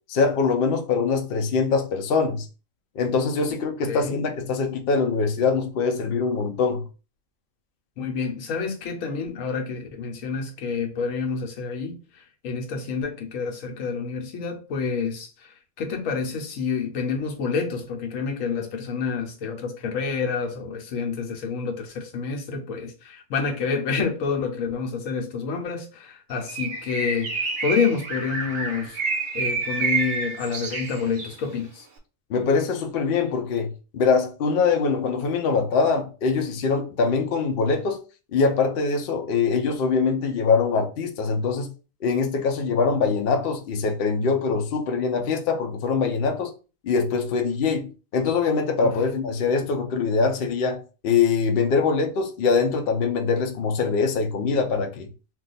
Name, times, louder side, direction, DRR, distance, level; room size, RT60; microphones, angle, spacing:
voice 1, 0.1-2.5 3.0-6.8 32.3-38.0 38.3-41.7 42.0-46.5 46.8-55.1, left 5 dB, 60° left, 0.6 m, -23 dB
voice 2, 3.8-4.3 8.0-29.0 29.3-31.9 48.8-48.9, left 5 dB, 75° left, 1.1 m, -28 dB
Bird, 26.5-31.4, right 4 dB, 55° right, 0.8 m, -28 dB
2.4 x 2.3 x 3.9 m
omnidirectional pair, 1.4 m